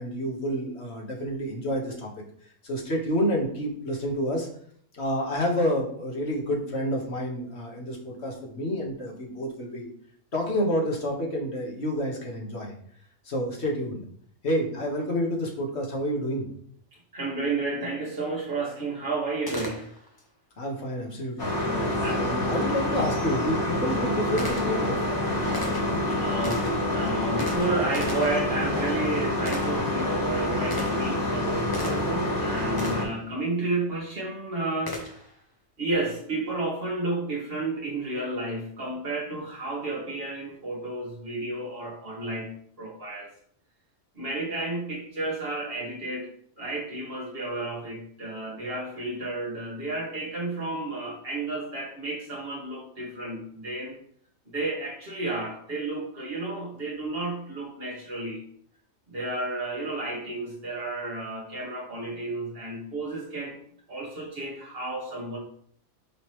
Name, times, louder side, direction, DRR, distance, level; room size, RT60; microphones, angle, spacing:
voice 1, 0.0-2.1 2.6-4.5 4.9-9.9 10.3-12.7 13.3-14.0 14.4-16.5 20.6-21.5 22.1-25.0, equal, 50° left, -1 dB, 1.9 m, -29 dB
voice 2, 17.1-19.9 22.0-22.4 25.7-35.0 35.8-42.5 42.8-43.3 44.1-46.3 46.6-54.0 54.5-58.4 59.1-63.5 63.9-65.4, right 2 dB, 45° right, -3 dB, 2.4 m, -32 dB
Gunshot gunfire, 19.5-20.3 22.6-22.7 23.4-32.3 32.8-33.2 34.9-35.4, left 1 dB, 15° left, 1.1 m, -39 dB
sound 1, 21.4-33.0, left 1 dB, 80° left, 3.4 m, -27 dB
10.0 x 4.1 x 3.2 m, 0.62 s
omnidirectional pair, 1.5 m